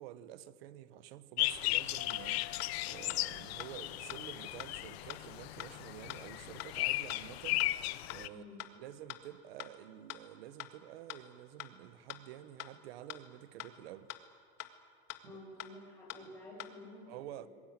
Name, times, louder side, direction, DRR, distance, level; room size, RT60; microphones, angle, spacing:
voice 1, 0.0-7.8 8.1-8.5 8.8-14.1 15.2-15.4 17.1-17.5, right 12 dB, 80° right, 1.4 m, -50 dB
sound 1, 1.4-8.3, left 18 dB, 85° left, 0.9 m, -36 dB
sound 2, 1.6-1.7 2.1-2.2 2.6-2.7 3.1-3.2 3.6-3.7 4.1-4.2 4.6-4.7 5.1-5.2 5.6-5.7 6.1-6.2 6.6-6.7 7.1-7.2 7.6-7.7 8.1-8.2 8.6-8.7 9.1-9.2 9.6-9.7 10.1-10.2 10.6-10.7 11.1-11.2 11.6-11.7 12.1-12.2 12.6-12.7 13.1-13.2 13.6-13.7 14.1-14.2 14.6-14.7 15.1-15.2 15.6-15.7 16.1-16.2 16.6-16.7, left 19 dB, 65° left, 1.9 m, -44 dB
sound 3, 2.0-5.3, left 15 dB, 40° left, 0.9 m, -54 dB
voice 2, 8.3-8.6 15.2-17.5, left 1 dB, 5° left, 7.2 m, -51 dB
26.0 x 21.0 x 9.0 m
supercardioid pair, 170°, 31 cm